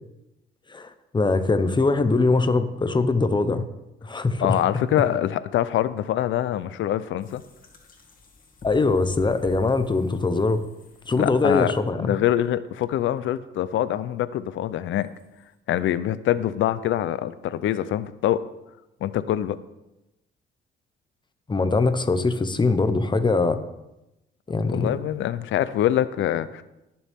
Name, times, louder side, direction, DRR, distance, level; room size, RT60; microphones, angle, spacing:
voice 1, 0.7-3.6 4.0-4.6 8.6-10.6 11.1-12.1 21.5-23.6 24.5-25.0, left 3 dB, 25° left, 10 dB, 1.1 m, -22 dB
voice 2, 4.4-7.4 11.2-11.7 12.0-15.1 15.7-18.4 19.0-19.6 24.7-26.6, left 12 dB, 75° left, 15 dB, 0.6 m, -24 dB
sound 1, 7.2-11.8 15.0-15.5, left 2 dB, 45° left, 2.4 m, -49 dB
19.0 x 7.1 x 3.7 m, 0.93 s
cardioid pair, 90°, 20 cm